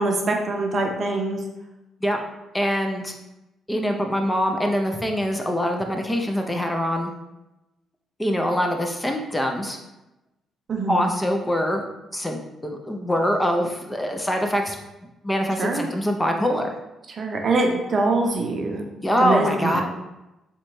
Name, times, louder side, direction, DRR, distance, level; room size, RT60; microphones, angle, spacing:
voice 1, 0.0-1.4 10.7-11.1 15.6-15.9 17.1-18.8 19.2-19.8, right 2 dB, 50° right, 2 dB, 0.6 m, -24 dB
voice 2, 2.5-3.1 3.7-7.1 8.2-9.8 10.9-11.8 12.1-14.8 15.2-16.7 19.0-19.8, equal, 10° left, 3 dB, 0.4 m, -24 dB
3.8 x 2.2 x 3.0 m, 0.98 s
cardioid pair, 90°, 0 cm